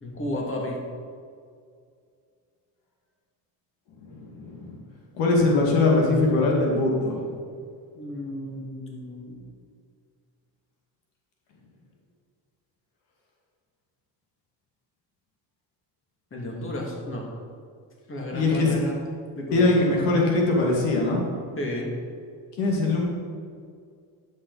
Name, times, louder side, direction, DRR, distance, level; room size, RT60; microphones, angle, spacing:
voice 1, 0.0-0.8 7.9-9.5 16.3-17.3 18.1-19.0 19.4-19.7 21.6-21.9, left 1 dB, 30° left, -1 dB, 2.3 m, -32 dB
voice 2, 4.0-4.8 5.1-7.2 18.3-18.8 19.5-21.2 22.6-23.0, left 2 dB, 80° left, -1 dB, 2.1 m, -22 dB
9.8 x 7.6 x 4.1 m, 2.2 s
supercardioid pair, 95°, 43 cm